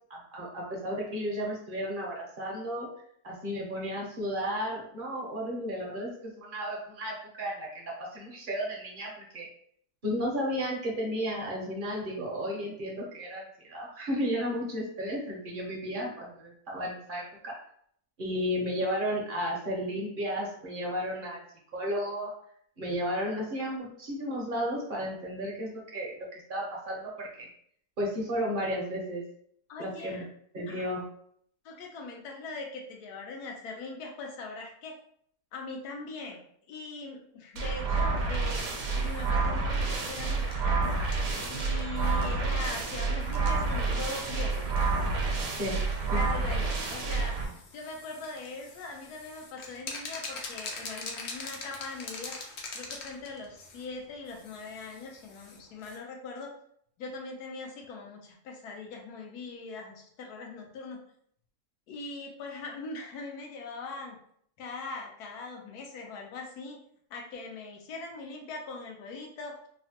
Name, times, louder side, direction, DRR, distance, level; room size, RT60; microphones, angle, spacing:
voice 1, 0.1-2.9 3.2-9.5 10.0-17.5 18.2-21.4 21.7-22.3 22.8-27.5 28.0-29.2 29.8-30.2 30.5-31.0 45.6-45.8 46.1-46.2, equal, 50° right, -3 dB, 0.6 m, -33 dB
voice 2, 29.7-30.3 30.7-30.9 31.6-34.9 35.5-36.4 36.7-38.7 39.0-41.0 41.5-44.7 46.1-47.4 47.7-52.4 52.7-56.5 57.0-61.0 61.9-64.2 64.6-66.8 67.1-69.6, left 3 dB, 85° left, 1 dB, 1.2 m, -41 dB
sound 1, 37.6-47.4, right 3 dB, 75° right, 1.0 m, -29 dB
sound 2, 38.5-56.0, left 3 dB, 65° left, 0.7 m, -45 dB
3.1 x 2.1 x 2.8 m, 0.65 s
omnidirectional pair, 1.6 m